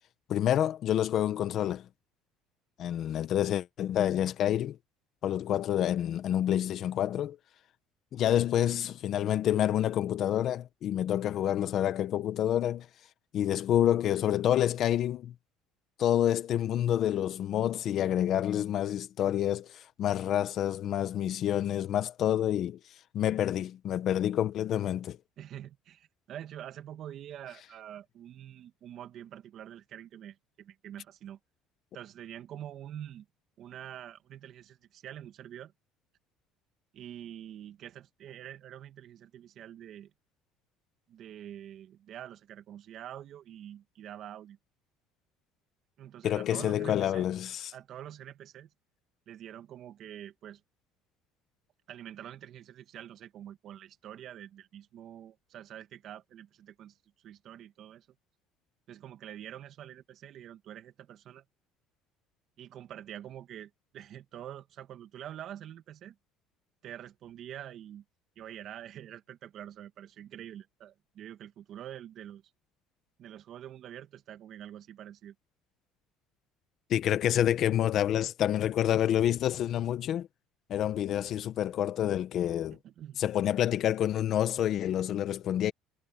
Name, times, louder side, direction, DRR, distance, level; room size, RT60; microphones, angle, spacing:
voice 1, 0.3-1.9 2.8-4.8 5.2-7.4 8.1-12.9 13.3-15.3 16.0-22.8 23.1-25.2 46.2-47.7 76.9-80.3 80.7-82.8 83.2-85.7, left 11 dB, 50° left, 1.3 m, -28 dB
voice 2, 25.4-31.4 31.9-33.3 33.6-35.7 36.9-40.1 41.1-44.6 46.0-47.3 47.7-48.7 49.3-50.6 51.9-58.1 58.9-61.4 62.6-66.2 66.8-68.0 68.4-72.4 73.2-75.3 82.7-83.2, right 11 dB, 50° right, 2.4 m, -46 dB
cardioid pair, 130°, 0 cm